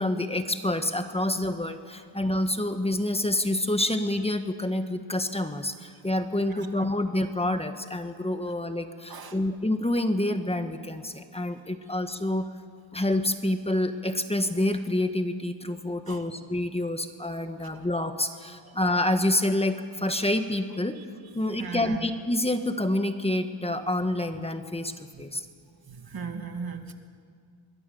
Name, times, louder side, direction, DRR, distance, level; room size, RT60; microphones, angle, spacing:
voice 1, 0.0-12.5 12.9-21.0 21.3-24.9 25.2-25.4, left 1 dB, 10° left, 7 dB, 1.4 m, -27 dB
voice 2, 21.6-22.1 25.1-25.3 25.6-26.9, right 5 dB, 45° right, 5 dB, 2.2 m, -39 dB
26.0 x 21.5 x 7.1 m, 2.1 s
wide cardioid pair, 115°, 50 cm